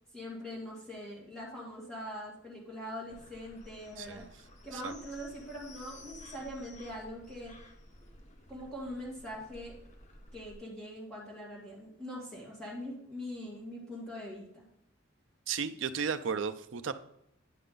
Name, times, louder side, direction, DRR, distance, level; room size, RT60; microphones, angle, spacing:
voice 1, 0.1-4.2 4.6-7.6 8.5-9.8 10.3-14.6, equal, 5° left, -6 dB, 2.1 m, -42 dB
sound 1, 3.1-10.6, left 1 dB, 35° left, 1.0 m, -53 dB
voice 2, 4.0-4.3 4.7-4.9 15.5-16.9, right 6 dB, 65° right, 10 dB, 0.5 m, -34 dB
9.8 x 5.6 x 3.9 m, 0.77 s
head